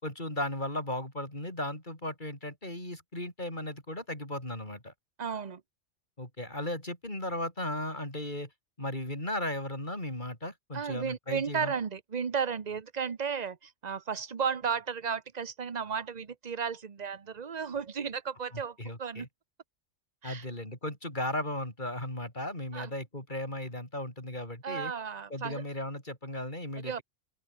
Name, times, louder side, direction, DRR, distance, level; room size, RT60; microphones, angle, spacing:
voice 1, 0.0-4.9 6.2-8.5 8.8-11.7 18.5-19.3 20.2-24.9 25.3-27.0, left 1 dB, 40° left, 6.2 m, -36 dB
voice 2, 5.2-5.6 10.7-19.3 20.2-20.4 22.7-22.9 24.6-25.6 26.8-27.0, right 6 dB, 35° right, 1.1 m, -34 dB
open air
omnidirectional pair, 1.2 m